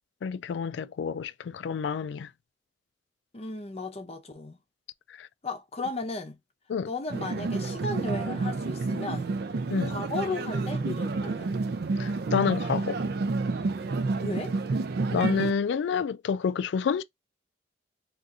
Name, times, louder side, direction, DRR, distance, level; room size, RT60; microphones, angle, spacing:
voice 1, 0.2-2.3 5.2-5.3 6.7-6.9 9.7-9.9 12.0-13.0 15.1-17.0, left 6 dB, 65° left, 0.3 m, -28 dB
voice 2, 3.3-4.6 5.4-6.4 6.9-9.3 9.8-11.5 14.2-14.5, left 2 dB, 35° left, 0.6 m, -35 dB
sound 1, 7.1-15.5, right 3 dB, 55° right, 0.4 m, -29 dB
2.7 x 2.5 x 3.6 m
head